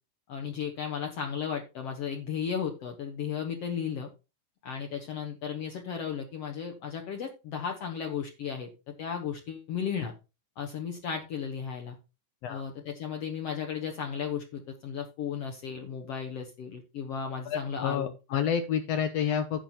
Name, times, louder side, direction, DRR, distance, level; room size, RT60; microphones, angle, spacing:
voice 1, 0.3-4.1 4.6-8.7 9.0-10.1 10.6-12.0 12.5-18.1, left 7 dB, 60° left, 2 dB, 1.9 m, -35 dB
voice 2, 17.5-19.6, left 8 dB, 75° left, 9 dB, 1.5 m, -29 dB
10.5 x 6.7 x 4.3 m, 0.29 s
omnidirectional pair, 3.7 m